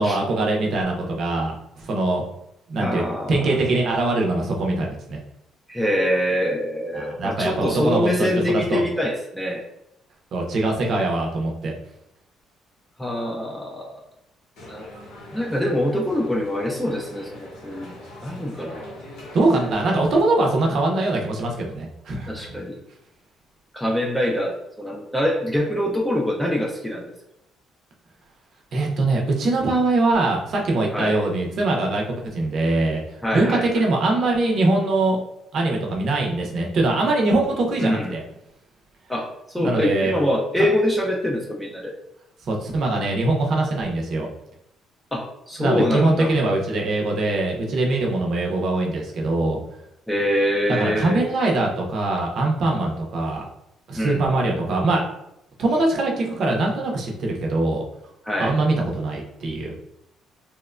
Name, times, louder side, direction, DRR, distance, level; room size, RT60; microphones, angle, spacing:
voice 1, 0.0-2.2 2.7-3.0 3.3-5.2 6.9-8.8 10.3-11.7 19.3-22.6 28.7-32.0 32.3-33.0 33.3-35.2 35.5-38.2 39.6-40.1 42.5-44.3 45.6-49.6 50.7-53.4 53.9-55.1 55.6-57.8 58.4-59.7, right 2 dB, 50° right, 0 dB, 0.5 m, -22 dB
voice 2, 2.8-3.3 5.7-9.6 13.0-14.0 14.7-14.8 15.3-17.9 18.2-18.8 22.3-22.8 23.7-27.1 30.9-31.2 33.2-33.9 37.8-38.1 39.1-41.9 45.1-46.3 50.1-51.2 54.0-54.2 58.3-58.5, left 1 dB, 5° left, -1 dB, 0.3 m, -24 dB
sound 1, 14.6-20.2, left 1 dB, 85° left, 0.8 m, -41 dB
2.9 x 2.1 x 2.4 m, 0.81 s
cardioid pair, 145°, 0 cm